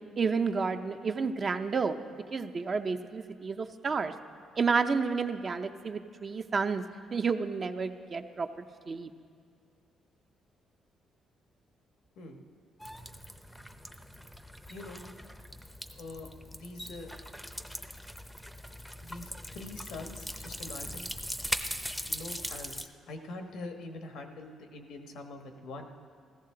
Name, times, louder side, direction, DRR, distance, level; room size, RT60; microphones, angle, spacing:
voice 1, 0.2-2.0 2.3-4.1 4.6-6.8 7.1-9.1, right 5 dB, 40° right, 6 dB, 0.6 m, -30 dB
sound 1, 12.8-22.9, equal, ahead, 0.6 m, -40 dB
voice 2, 14.7-15.0 16.0-17.1 19.0-21.1 22.1-25.9, left 2 dB, 85° left, 4 dB, 1.2 m, -44 dB
15.5 x 14.0 x 3.8 m, 2.3 s
cardioid pair, 90°, 0 cm